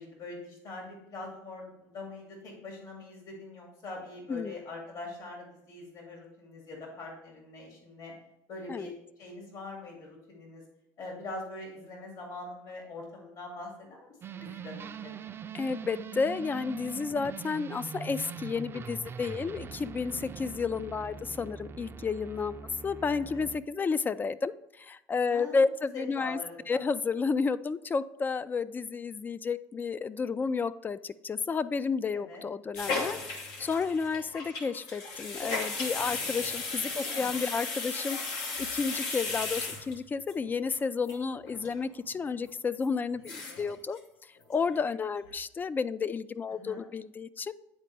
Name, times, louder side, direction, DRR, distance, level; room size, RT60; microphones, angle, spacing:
voice 1, 0.0-8.1 8.5-10.7 11.0-15.1 20.1-20.2 23.1-23.5 25.3-25.7 25.9-26.8 32.1-32.4 37.0-37.4 43.5-43.7 46.5-46.8, left 2 dB, 60° left, 0 dB, 2.3 m, -43 dB
sound 1, 14.2-23.6, right 6 dB, 35° right, 0.4 m, -42 dB
voice 2, 15.5-22.5 22.8-26.4 26.7-33.2 33.6-38.2 38.6-44.0 44.5-47.5, left 5 dB, 25° left, 16 dB, 0.3 m, -31 dB
sound 2, 32.7-40.3 40.7-40.8 41.0-41.1 41.4-41.8 42.1-42.2 42.8-42.9 43.1-43.7 44.0-44.1 44.4-44.9 45.3-45.4, left 3 dB, 80° left, 1.2 m, -35 dB
9.4 x 4.2 x 3.3 m, 0.86 s
supercardioid pair, 90°, 7 cm